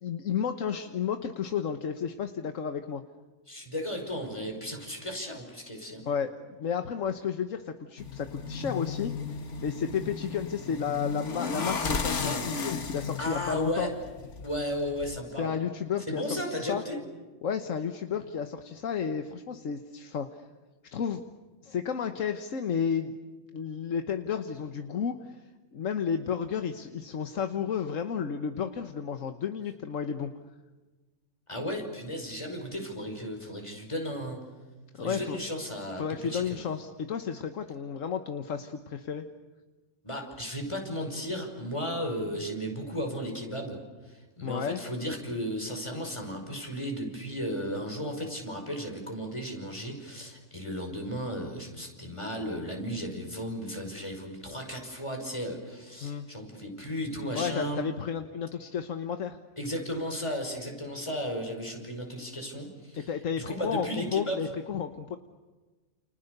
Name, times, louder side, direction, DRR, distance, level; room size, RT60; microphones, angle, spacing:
voice 1, 0.0-3.0 5.8-9.1 9.6-13.9 15.4-16.8 17.4-20.4 20.9-21.2 21.6-23.2 23.5-25.4 25.7-30.3 35.0-35.4 36.0-39.3 44.4-44.8 56.0-56.3 57.3-59.4 63.1-65.2, left 7 dB, 85° left, 7 dB, 1.5 m, -32 dB
voice 2, 3.5-6.1 12.2-12.4 13.2-13.9 14.4-15.6 16.1-17.0 31.5-34.4 35.0-36.0 36.3-36.6 40.0-43.8 44.1-57.8 59.6-63.1 63.4-64.4, equal, 25° left, 2 dB, 5.6 m, -35 dB
sound 1, 8.0-15.2, left 5 dB, 65° left, 1.9 m, -35 dB
30.0 x 29.5 x 6.7 m, 1.3 s
omnidirectional pair, 1.3 m